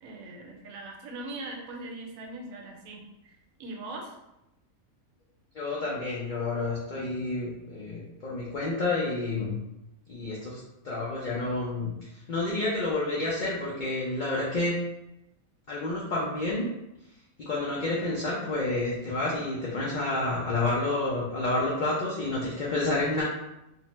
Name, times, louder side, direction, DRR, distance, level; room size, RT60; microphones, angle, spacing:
voice 1, 0.0-4.1, right 2 dB, 75° right, 0 dB, 1.0 m, -41 dB
voice 2, 5.5-9.6 10.1-10.6 10.8-14.7 15.7-16.7 17.5-23.2, left 2 dB, 75° left, -6 dB, 0.4 m, -29 dB
2.7 x 2.1 x 3.0 m, 0.89 s
omnidirectional pair, 1.5 m